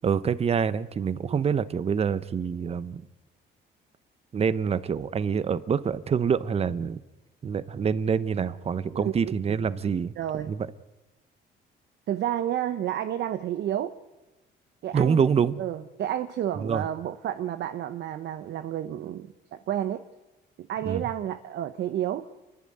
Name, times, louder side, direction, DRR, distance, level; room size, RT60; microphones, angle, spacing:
voice 1, 0.0-3.0 4.3-7.0 7.4-10.6 14.9-15.6 16.6-16.9 20.8-21.0, right 6 dB, 35° right, 0.9 m, -26 dB
voice 2, 8.9-9.6 10.2-10.5 12.1-13.9 14.8-15.2 15.6-20.0 20.6-22.3, right 11 dB, 65° right, 0.9 m, -31 dB
29.5 x 11.0 x 9.8 m
cardioid pair, 120°, 19 cm